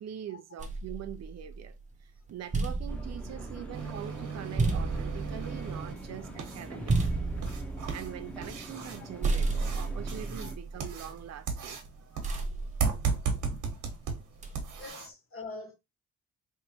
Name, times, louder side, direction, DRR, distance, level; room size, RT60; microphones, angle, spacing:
voice 1, 0.0-7.3 7.9-11.8, right 10 dB, 60° right, 0.7 m, -43 dB
sound 1, 0.6-1.9 2.3-9.0 9.2-11.5 12.2-13.7 14.4-14.9, right 3 dB, 25° right, 1.0 m, -33 dB
sound 2, 2.9-10.6, right 1 dB, 5° left, 1.1 m, -44 dB
sound 3, 3.7-15.1, right 5 dB, 80° right, 1.4 m, -36 dB
voice 2, 14.4-15.8, left 3 dB, 45° left, 1.5 m, -45 dB
3.6 x 3.3 x 3.0 m
cardioid pair, 90°, 30 cm